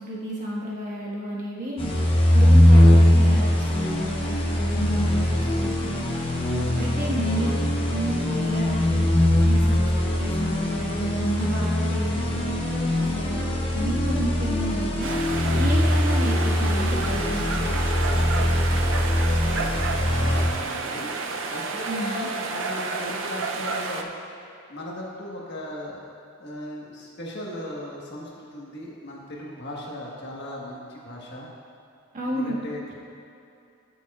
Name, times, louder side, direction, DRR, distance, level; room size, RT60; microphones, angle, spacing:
voice 1, 0.0-1.9 2.3-6.1 6.8-7.6 7.9-9.0 9.4-12.6 13.0-15.1 15.5-17.8 21.8-22.3 32.1-32.6, equal, 35° right, -5 dB, 1.6 m, -31 dB
sound 1, 1.8-20.5, left 1 dB, 25° left, 0.9 m, -21 dB
sound 2, 15.0-24.0, right 4 dB, 60° right, 0.5 m, -31 dB
voice 2, 20.2-21.1 21.5-24.1 24.7-26.0 26.4-31.5 32.2-32.9, left 1 dB, 50° left, -3 dB, 1.4 m, -37 dB
13.5 x 7.0 x 2.4 m, 2.7 s
head